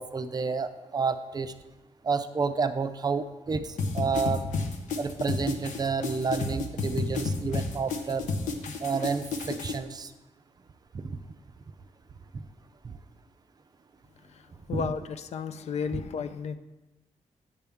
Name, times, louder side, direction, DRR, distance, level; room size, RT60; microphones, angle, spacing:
voice 1, 0.0-1.5 2.0-4.4 5.0-8.3 8.8-10.1 11.0-11.2 14.7-14.8 15.9-16.0, right 5 dB, 35° right, 10 dB, 0.4 m, -30 dB
sound 1, 3.8-9.8, left 3 dB, 90° left, 0.9 m, -31 dB
voice 2, 14.3-16.6, left 6 dB, 60° left, 10 dB, 0.5 m, -33 dB
8.5 x 6.8 x 3.5 m, 1.1 s
cardioid pair, 110°, 12 cm